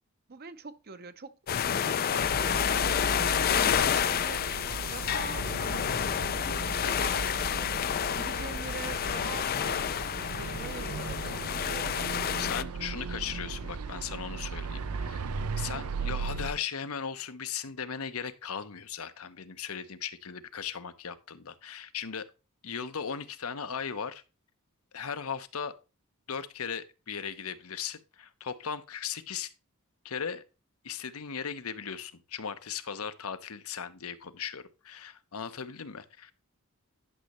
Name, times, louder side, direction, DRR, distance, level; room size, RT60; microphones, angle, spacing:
voice 1, 0.3-4.5 4.9-6.1 6.6-12.0, right 4 dB, 45° right, 0.7 m, -44 dB
sound 1, 1.5-12.6, left 9 dB, 40° left, 0.4 m, -29 dB
sound 2, 2.2-16.5, right 4 dB, 90° right, 0.6 m, -37 dB
voice 2, 12.3-15.3 15.6-22.2 22.6-24.2 24.9-25.7 26.3-29.5 30.0-30.4 30.8-36.3, left 7 dB, 80° left, 0.9 m, -37 dB
11.0 x 6.4 x 3.1 m
head